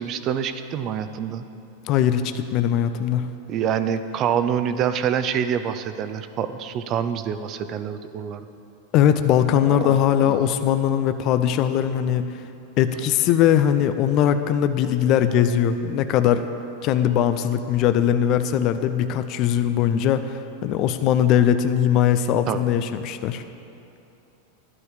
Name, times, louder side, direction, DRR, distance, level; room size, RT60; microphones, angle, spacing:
voice 1, 0.0-1.4 3.5-8.5 9.7-10.0 10.2-10.5 22.5-22.8, right 8 dB, 45° right, 11 dB, 0.7 m, -26 dB
voice 2, 1.9-3.3 8.9-12.3 12.8-16.5 16.8-23.4, left 10 dB, 50° left, 10 dB, 0.5 m, -20 dB
12.0 x 9.8 x 4.9 m, 2.8 s
hypercardioid pair, 100°, 0 cm